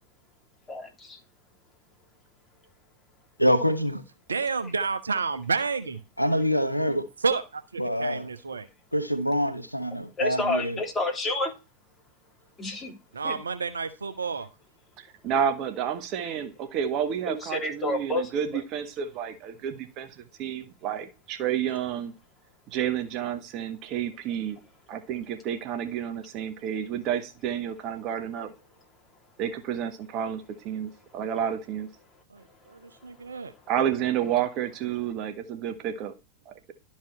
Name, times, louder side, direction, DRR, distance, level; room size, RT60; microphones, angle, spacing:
voice 1, 0.7-1.2 10.2-11.5 12.6-12.9 13.2-13.3 17.3-18.6, left 2 dB, 15° left, 3.2 m, -29 dB
voice 2, 3.4-4.0 6.2-7.1 7.8-8.2 8.9-10.8, equal, 90° left, 1.0 m, -25 dB
voice 3, 4.3-6.0 7.2-8.7 13.1-14.5 32.3-33.5, right 4 dB, 75° right, 1.0 m, -30 dB
voice 4, 15.0-22.1 22.7-24.6 24.9-28.5 29.4-31.9 33.7-36.1 36.4-36.7, right 9 dB, 40° right, 1.4 m, -30 dB
12.5 x 4.8 x 4.4 m
figure-of-eight pair, 90°, 0 cm